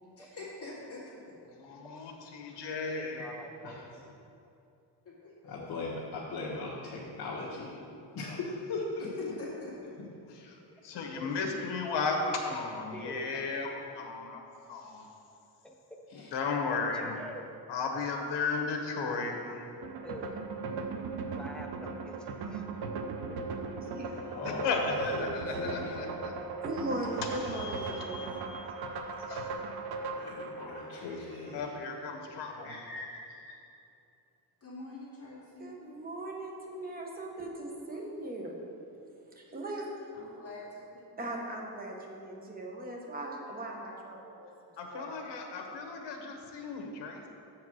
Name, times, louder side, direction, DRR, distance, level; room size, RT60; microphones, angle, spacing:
voice 1, 0.2-1.2 5.0-5.7 9.0-9.9 34.6-35.7 40.1-41.2, left 3 dB, 35° left, -6 dB, 2.0 m, -45 dB
voice 2, 1.5-3.2 10.5-15.1 16.1-17.1 17.7-19.7 24.4-26.3 27.4-28.9 29.3-29.5 31.5-32.7 44.8-47.3, left 4 dB, 75° left, 3 dB, 1.2 m, -35 dB
voice 3, 2.9-4.2 11.2-11.3 12.9-13.3 15.6-16.0 16.7-17.5 20.0-20.5 21.4-22.7 23.3-23.4, equal, ahead, 1 dB, 0.5 m, -46 dB
voice 4, 5.4-7.7 8.1-9.3 10.0-10.5 16.1-16.3 17.9-18.0 24.1-24.8 25.1-25.9 30.2-31.7 32.6-33.2 33.5-33.6, left 3 dB, 55° left, -7 dB, 1.4 m, -39 dB
sound 1, 19.8-31.6, right 4 dB, 60° right, 0.7 m, -38 dB
voice 5, 23.8-24.2 26.6-28.5 35.6-38.5 39.3-39.9 41.2-44.5 44.9-45.2, right 1 dB, 20° right, -1 dB, 1.0 m, -39 dB
7.4 x 4.7 x 6.2 m, 2.7 s
cardioid pair, 155°, 42 cm